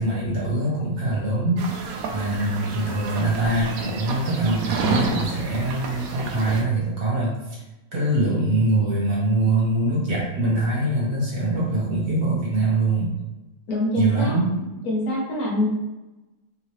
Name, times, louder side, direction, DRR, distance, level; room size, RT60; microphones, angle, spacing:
voice 1, 0.0-7.4 7.9-13.1 14.0-14.5, right 2 dB, 55° right, -6 dB, 1.5 m, -23 dB
sound 1, 1.6-6.6, right 3 dB, 70° right, 0.9 m, -30 dB
voice 2, 13.7-14.4 14.8-15.7, left 1 dB, 65° left, -3 dB, 1.3 m, -24 dB
3.6 x 2.8 x 3.1 m, 1.0 s
omnidirectional pair, 1.9 m